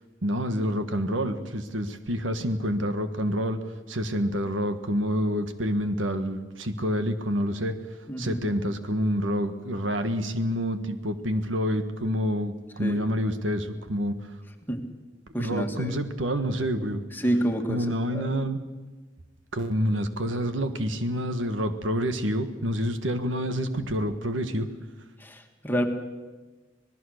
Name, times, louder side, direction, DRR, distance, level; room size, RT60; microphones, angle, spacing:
voice 1, 0.2-3.6 3.9-7.7 8.2-14.1 15.4-17.0 17.7-18.6 19.5-24.7, equal, 85° right, 9 dB, 1.7 m, -28 dB
voice 2, 8.1-8.4 12.8-13.0 14.7-14.8 15.3-16.0 17.1-18.3 25.2-25.8, equal, 10° left, 3 dB, 2.1 m, -28 dB
26.0 x 18.5 x 6.6 m, 1.3 s
head